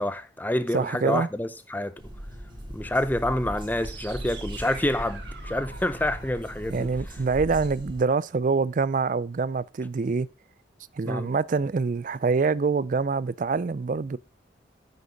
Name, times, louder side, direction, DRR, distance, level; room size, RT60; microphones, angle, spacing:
voice 1, 0.0-1.9 2.7-6.9 11.0-11.3, left 1 dB, 10° left, 0.5 m, -28 dB
voice 2, 0.7-1.3 6.7-10.3 11.0-14.2, right 4 dB, 45° right, 0.4 m, -25 dB
sound 1, 2.0-8.0, equal, 25° right, 2.5 m, -39 dB
sound 2, 3.8-7.8, right 4 dB, 65° right, 1.7 m, -46 dB
9.3 x 6.7 x 5.2 m
head